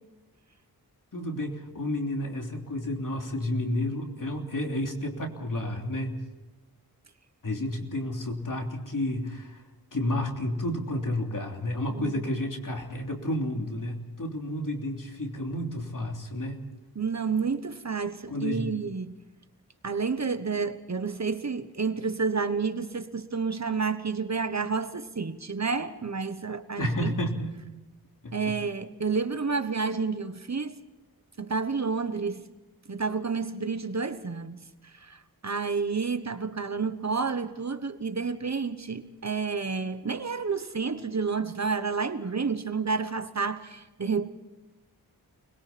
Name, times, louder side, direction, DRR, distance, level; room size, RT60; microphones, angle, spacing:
voice 1, 1.1-6.3 7.4-9.6 9.9-16.6 18.3-18.7 26.8-27.6 28.2-28.5, left 1 dB, 55° left, 3.3 m, -31 dB
voice 2, 16.9-19.2 19.8-27.1 28.3-30.7 31.4-32.4 32.9-44.3, right 5 dB, 45° right, 1.2 m, -30 dB
29.5 x 21.5 x 4.3 m
wide cardioid pair, 95°, 38 cm